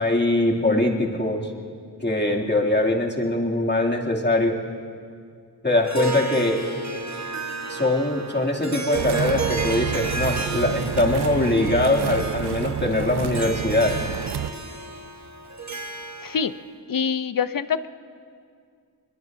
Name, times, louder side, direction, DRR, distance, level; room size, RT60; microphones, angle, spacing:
voice 1, 0.0-1.5 2.0-4.6 5.6-6.6 7.7-14.0, left 2 dB, 25° left, -2 dB, 2.7 m, -22 dB
Harp, 5.7-16.6, right 3 dB, 40° right, 1.5 m, -32 dB
sound 1, 8.9-14.5, right 9 dB, 70° right, 0.6 m, -29 dB
voice 2, 16.9-17.9, left 7 dB, 55° left, 13 dB, 0.7 m, -25 dB
22.5 x 22.0 x 2.7 m, 2.2 s
cardioid pair, 45°, 41 cm